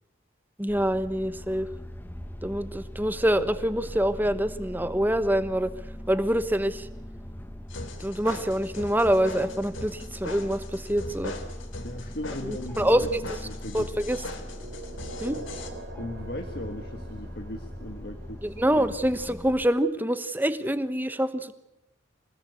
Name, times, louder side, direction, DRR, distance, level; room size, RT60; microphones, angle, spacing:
voice 1, 0.6-1.7 2.4-5.7 6.1-6.9 8.0-11.3 12.4-13.2 13.7-14.2 15.2-15.4 18.4-21.5, right 1 dB, 10° right, 12 dB, 1.1 m, -25 dB
sound 1, 0.7-19.7, equal, 10° left, 1.3 m, -41 dB
sound 2, 7.7-15.7, left 2 dB, 75° left, 3.2 m, -40 dB
voice 2, 11.8-13.1 13.4-13.9 15.3-15.4 16.0-18.8, left 1 dB, 50° left, 5 dB, 1.8 m, -38 dB
sound 3, 13.7-18.7, right 2 dB, 55° right, 2.9 m, -45 dB
26.0 x 19.0 x 8.4 m, 0.89 s
head